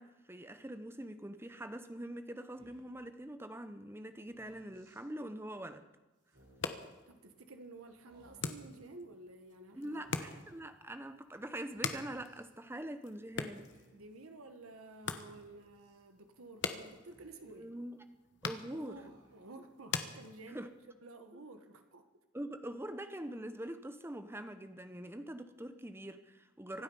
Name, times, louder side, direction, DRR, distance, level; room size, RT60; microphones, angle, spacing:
voice 1, 0.0-5.9 9.7-13.7 17.6-18.0 18.4-19.0 20.5-20.8 21.3-21.4 22.3-26.8, right 1 dB, 10° right, 9 dB, 0.8 m, -44 dB
Speech, 2.5-3.0 4.2-5.0 6.2-6.9 8.1-8.8 10.0-10.7 11.7-12.5 13.5-14.2 15.3-16.0 16.9-17.7 18.9-19.6, right 1 dB, 65° right, 5.3 m, -65 dB
sound 1, 6.4-20.9, left 5 dB, 55° left, 1.0 m, -45 dB
voice 2, 7.1-10.1 13.9-17.7 18.7-20.6 21.0-22.0, right 2 dB, 90° right, 7 dB, 1.3 m, -52 dB
25.0 x 8.7 x 5.5 m, 1.1 s
head